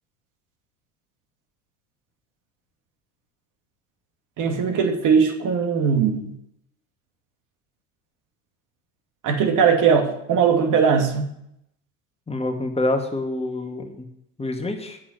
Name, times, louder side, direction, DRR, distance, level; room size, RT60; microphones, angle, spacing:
voice 1, 4.4-6.3 9.2-11.3, right 6 dB, 50° right, 5 dB, 2.4 m, -20 dB
voice 2, 12.3-14.1 14.4-15.0, left 2 dB, 15° left, 3 dB, 2.1 m, -26 dB
8.5 x 7.8 x 6.8 m, 0.76 s
hypercardioid pair, 80°, 39 cm